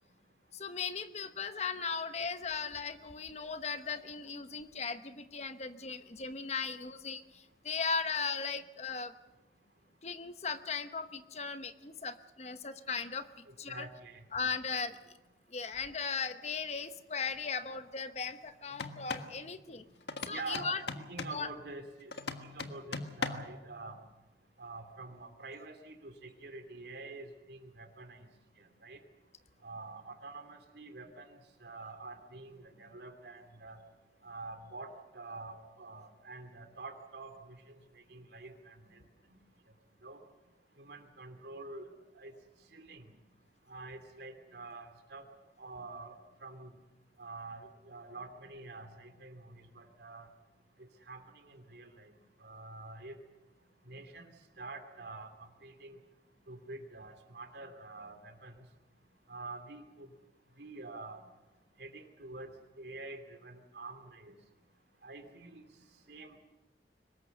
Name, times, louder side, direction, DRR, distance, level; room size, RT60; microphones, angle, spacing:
voice 1, 0.5-9.1 10.0-13.9 14.3-15.1 15.5-19.8 20.2-20.8 21.3-21.5, left 5 dB, 40° left, 10 dB, 1.0 m, -37 dB
voice 2, 13.5-14.5 20.3-22.1 22.4-24.0 24.6-28.3 28.6-29.0 29.6-33.8 34.2-37.8 38.1-39.0 40.0-40.2 40.8-42.3 42.7-43.1 43.7-45.2 45.6-46.7 47.2-50.3 50.8-52.1 52.4-53.2 53.9-54.3 54.6-56.0 56.5-58.5 59.3-60.1 60.6-61.2 61.8-64.3 65.0-65.6 66.1-66.4, right 3 dB, 70° right, 6 dB, 2.9 m, -47 dB
sound 1, 18.7-19.3 20.1-21.4 22.1-23.6, left 4 dB, 75° left, 1.5 m, -39 dB
23.5 x 20.0 x 6.8 m, 1.1 s
head